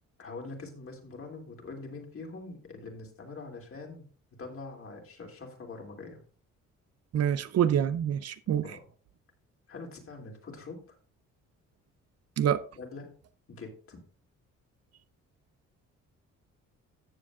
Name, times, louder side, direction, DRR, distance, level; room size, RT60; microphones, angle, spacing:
voice 1, 0.2-4.0 4.4-6.2 8.6-8.9 9.7-11.0 12.8-13.1 13.5-14.0, left 3 dB, 45° left, 2.8 m, -44 dB
voice 2, 7.1-8.7 12.4-12.6, right 9 dB, 55° right, 0.6 m, -26 dB
14.0 x 7.3 x 2.4 m
cardioid pair, 90°, 30 cm